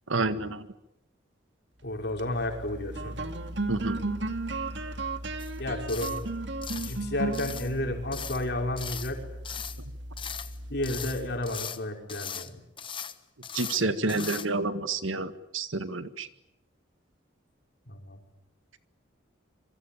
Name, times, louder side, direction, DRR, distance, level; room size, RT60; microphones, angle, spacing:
voice 1, 0.1-0.7 3.7-4.0 13.5-16.3, right 3 dB, 90° right, 11 dB, 1.8 m, -29 dB
voice 2, 1.8-3.1 5.6-6.1 6.8-9.3 10.7-12.6 17.9-18.2, left 1 dB, 55° left, 2 dB, 5.6 m, -32 dB
sound 1, 2.0-11.6, right 2 dB, 65° right, 2.2 m, -35 dB
sound 2, 5.4-5.6 5.9-6.2 6.6-7.0 7.3-7.7 8.1-8.5 8.8-9.2 9.4-9.8 10.2-10.6 10.8-11.8 12.1-12.5 12.8-13.2 13.4-13.8 14.1-14.5, left 8 dB, 25° left, 1.2 m, -39 dB
27.0 x 24.0 x 8.9 m, 0.85 s
head